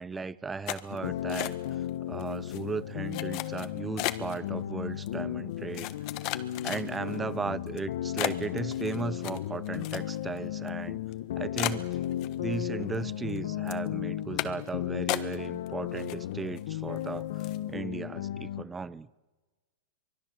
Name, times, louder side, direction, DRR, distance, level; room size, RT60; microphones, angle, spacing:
voice 1, 0.0-1.5 2.1-5.9 6.6-11.0 11.4-11.9 12.4-17.3 17.7-19.1, right 4 dB, 10° right, 0.7 m, -36 dB
sound 1, 0.7-1.9 2.2-2.6 3.1-4.4 5.1-5.2 5.7-7.2 7.7-7.8 8.2-10.4 10.7-10.8 11.1-11.2 11.6-12.6 12.9-13.4 13.7-13.9 14.4-14.7 15.1-15.7 16.0-16.6 17.0-17.1 17.4-17.7, left 18 dB, 45° left, 1.3 m, -35 dB
sound 2, 0.9-18.6, left 12 dB, 65° left, 1.3 m, -35 dB
24.5 x 23.0 x 6.8 m
hypercardioid pair, 140°, 0 cm